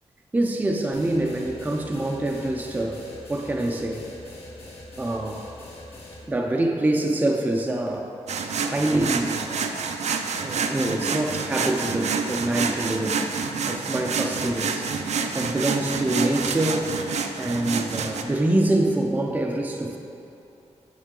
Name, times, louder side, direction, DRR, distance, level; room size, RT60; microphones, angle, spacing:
voice 1, 0.3-3.0 3.3-4.1 5.0-5.5 6.3-8.1 8.7-9.4 10.4-13.3 13.6-17.0 17.4-20.0, right 1 dB, 15° right, 1 dB, 0.4 m, -25 dB
sound 1, 0.9-6.2, left 1 dB, 55° left, 1.8 m, -43 dB
sound 2, 8.3-18.2, right 5 dB, 70° right, 0.5 m, -28 dB
9.2 x 6.6 x 3.8 m, 2.8 s
wide cardioid pair, 170°, 12 cm